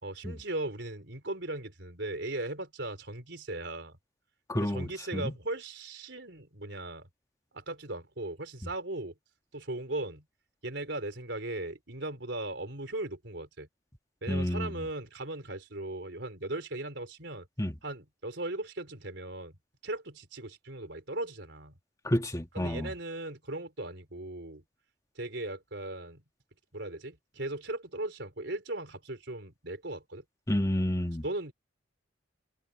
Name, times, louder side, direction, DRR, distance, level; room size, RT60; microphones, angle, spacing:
voice 1, 0.0-4.0 4.5-7.1 7.5-9.1 9.5-10.2 10.6-13.7 14.2-17.5 17.8-19.5 19.8-21.7 22.5-24.6 25.2-26.2 26.7-30.2 31.2-31.5, right 2 dB, 70° right, 4.1 m, -38 dB
voice 2, 4.5-5.3 14.3-14.8 17.6-17.8 22.0-22.9 30.5-31.2, equal, 20° left, 1.9 m, -30 dB
head